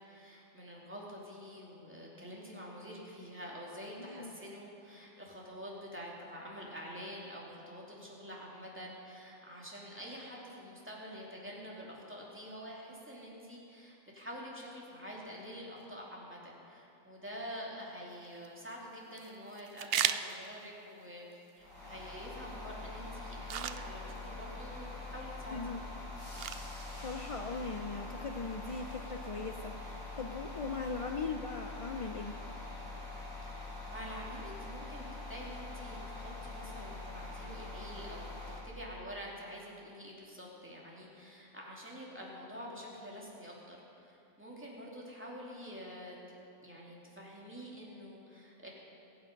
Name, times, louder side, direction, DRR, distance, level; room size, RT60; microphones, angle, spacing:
voice 1, 0.0-21.2 21.6-25.8 33.4-33.5 33.9-38.3 38.6-43.8 44.0-46.2 46.6-48.7, equal, 10° right, -4 dB, 2.7 m, -47 dB
voice 2, 4.0-4.4 25.5-25.8 26.9-32.4, left 4 dB, 55° left, 5 dB, 0.3 m, -39 dB
sound 1, 18.1-31.1, right 9 dB, 60° right, 0.6 m, -43 dB
sound 2, 21.6-38.6, left 2 dB, 75° left, 4.1 m, -44 dB
22.0 x 8.9 x 5.3 m, 2.8 s
omnidirectional pair, 1.4 m